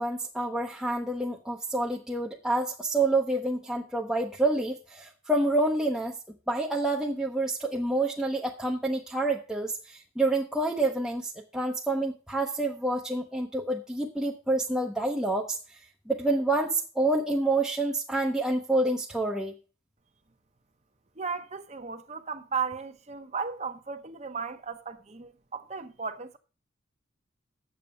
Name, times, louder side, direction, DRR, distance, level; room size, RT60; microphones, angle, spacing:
voice 1, 0.0-6.1 6.5-15.6 16.1-19.5, right 2 dB, 5° right, 0.7 m, -28 dB
voice 2, 21.2-26.4, right 5 dB, 30° right, 0.9 m, -35 dB
8.2 x 7.1 x 6.3 m
head